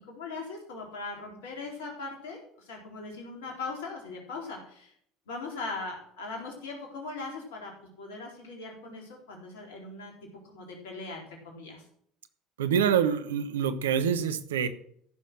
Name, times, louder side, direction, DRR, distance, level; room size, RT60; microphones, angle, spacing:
voice 1, 0.1-4.9 5.3-7.7 8.0-10.1 10.4-11.3 11.5-11.8, left 3 dB, 70° left, 0 dB, 3.9 m, -39 dB
voice 2, 12.6-14.7, right 8 dB, 75° right, 11 dB, 1.0 m, -26 dB
14.5 x 6.6 x 6.1 m, 0.65 s
figure-of-eight pair, 65°, 0 cm